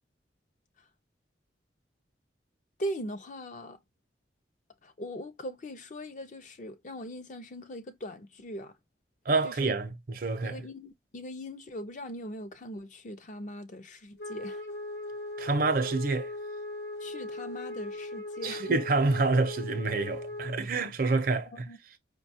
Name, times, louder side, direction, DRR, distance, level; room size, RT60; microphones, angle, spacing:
voice 1, 2.8-3.8 4.8-8.7 9.4-9.7 10.4-14.6 17.0-18.6 21.5-21.8, equal, 40° left, 0.5 m, -40 dB
voice 2, 9.3-10.6 15.4-16.3 18.4-21.7, right 3 dB, 50° right, 0.6 m, -27 dB
Wind instrument woodwind instrument, 14.2-20.6, left 2 dB, 75° left, 1.0 m, -39 dB
5.2 x 2.2 x 2.7 m
head